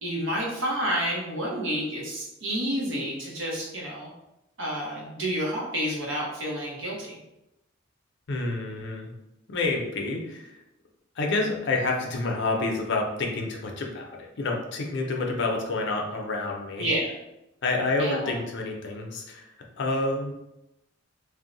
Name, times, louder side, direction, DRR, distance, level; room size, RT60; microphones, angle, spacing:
voice 1, 0.0-4.1 4.6-7.2 16.8-17.1 18.0-18.3, equal, 70° right, -2 dB, 0.9 m, -29 dB
voice 2, 8.3-9.1 9.5-10.5 11.2-16.9 17.6-19.4 19.8-20.3, left 3 dB, 60° left, 1 dB, 0.5 m, -28 dB
2.6 x 2.1 x 3.8 m, 0.91 s
head